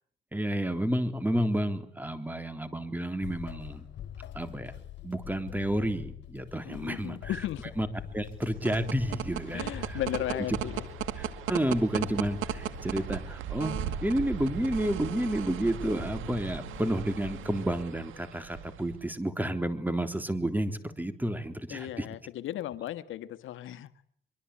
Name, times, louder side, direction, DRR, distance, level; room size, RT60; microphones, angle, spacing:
voice 1, 0.3-3.9 4.3-4.7 5.0-7.9 8.1-10.0 10.3-10.5 11.2-22.1, right 1 dB, 10° right, 8 dB, 3.8 m, -31 dB
sound 1, 3.2-17.7, left 11 dB, 65° left, 4.1 m, -45 dB
voice 2, 6.6-7.7 9.5-10.8 21.7-23.9, left 13 dB, 80° left, 11 dB, 1.5 m, -35 dB
sound 2, 8.3-19.0, right 11 dB, 85° right, 2.3 m, -37 dB
24.5 x 24.0 x 8.6 m, 0.62 s
cardioid pair, 90°, 20 cm